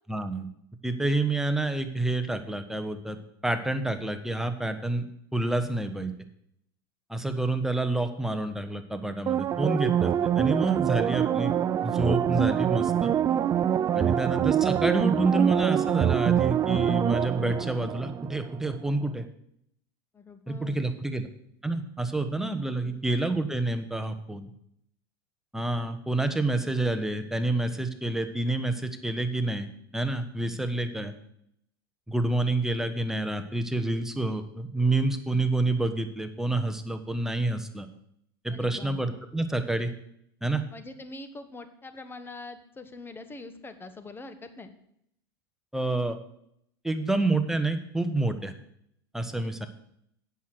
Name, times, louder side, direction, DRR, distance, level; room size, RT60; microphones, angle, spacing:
voice 1, 0.1-0.5 0.8-3.2 3.4-5.1 5.3-6.1 7.1-11.5 11.8-13.1 13.9-19.2 20.5-21.3 21.6-24.5 25.5-29.7 29.9-31.1 32.1-37.9 38.4-39.9 40.4-40.6 45.7-46.2 46.8-48.5 49.1-49.7, right 2 dB, 5° right, 8 dB, 1.1 m, -28 dB
sound 1, 9.3-18.6 19.0-19.1, right 10 dB, 30° right, 0.4 m, -25 dB
voice 2, 20.1-20.8 22.6-23.0 38.5-39.0 40.7-44.7 49.4-49.7, left 2 dB, 15° left, 9 dB, 1.2 m, -44 dB
8.3 x 6.4 x 7.8 m, 0.72 s
hypercardioid pair, 95°, 12 cm